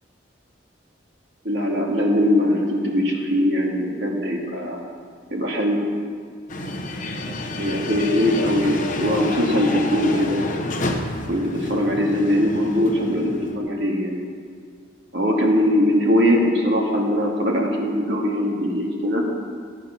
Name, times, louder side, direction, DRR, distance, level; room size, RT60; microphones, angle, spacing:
voice 1, 1.4-4.8 5.3-5.8 7.4-10.4 11.3-14.2 15.1-19.2, equal, 60° right, -1 dB, 2.2 m, -21 dB
sound 1, 6.5-13.6, left 2 dB, 40° left, 1.0 m, -29 dB
13.0 x 8.4 x 5.9 m, 2.1 s
head